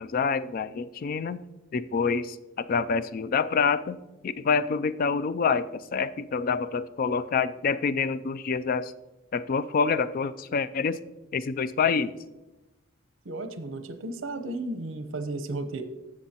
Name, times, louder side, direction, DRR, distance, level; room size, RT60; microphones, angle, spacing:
voice 1, 0.0-1.4 1.7-4.0 4.2-8.9 9.3-11.0 11.3-12.2, left 5 dB, 45° left, 15 dB, 0.3 m, -27 dB
voice 2, 13.2-15.8, right 2 dB, 65° right, 8 dB, 0.8 m, -34 dB
15.5 x 6.4 x 2.9 m, 1.0 s
head